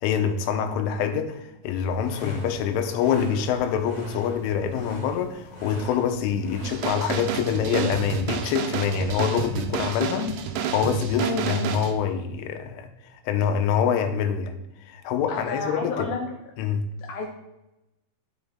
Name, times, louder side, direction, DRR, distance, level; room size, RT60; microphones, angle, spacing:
voice 1, 0.0-10.3 10.7-12.9 13.3-14.5 14.8-16.1 16.6-16.9, left 7 dB, 90° left, 7 dB, 3.4 m, -25 dB
sound 1, 1.8-7.2, left 1 dB, 35° left, 0.6 m, -40 dB
sound 2, 6.6-11.9, right 8 dB, 75° right, 2.8 m, -30 dB
voice 2, 11.2-11.7 15.3-16.2 17.1-17.3, left 4 dB, 75° left, 1 dB, 2.4 m, -30 dB
12.0 x 7.5 x 3.7 m, 0.94 s
omnidirectional pair, 5.4 m